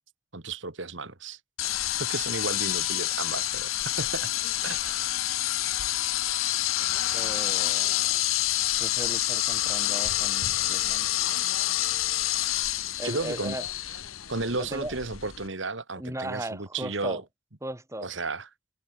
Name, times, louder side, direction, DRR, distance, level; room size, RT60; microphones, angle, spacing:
voice 1, 0.3-1.4 1.7-4.3 4.6-5.0 13.0-13.6 14.3-17.2 18.0-18.5, right 3 dB, 65° right, 2.2 m, -33 dB
sound 1, 1.6-15.5, left 14 dB, 90° left, 1.4 m, -28 dB
voice 2, 7.1-8.1 8.8-11.1 13.0-13.7 14.5-14.9 16.0-17.2 17.6-18.1, right 1 dB, 15° right, 3.4 m, -37 dB
head